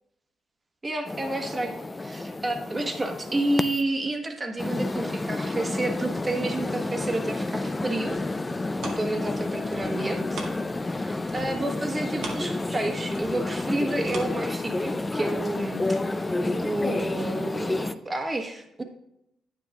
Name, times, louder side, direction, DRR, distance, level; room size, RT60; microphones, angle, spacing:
voice 1, 0.8-8.2 8.8-10.4 10.9-18.8, right 2 dB, 25° right, 4 dB, 1.3 m, -30 dB
sound 1, 1.1-3.8 4.6-17.9, left 2 dB, 20° left, 0.5 m, -30 dB
sound 2, 8.7-10.9 11.2-15.0 15.5-15.6, right 3 dB, 80° right, 1.8 m, -42 dB
10.0 x 9.2 x 2.4 m, 0.81 s
cardioid pair, 90°, 0 cm